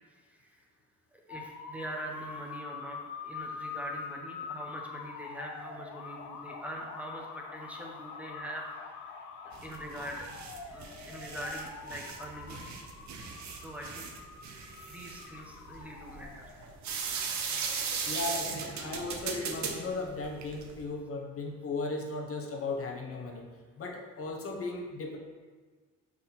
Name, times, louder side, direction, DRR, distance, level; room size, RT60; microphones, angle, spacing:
voice 1, 0.1-0.6 1.1-8.6 9.4-12.7 13.6-14.1 14.9-16.6 17.2-18.0, right 1 dB, 5° right, -1 dB, 1.1 m, -43 dB
sound 1, 1.3-16.8, left 5 dB, 80° left, 0.7 m, -44 dB
sound 2, 9.5-20.8, right 5 dB, 65° right, 0.9 m, -38 dB
voice 2, 18.0-23.4 23.8-25.2, left 3 dB, 50° left, 2 dB, 1.1 m, -36 dB
6.1 x 4.1 x 4.2 m, 1.5 s
cardioid pair, 90°, 30 cm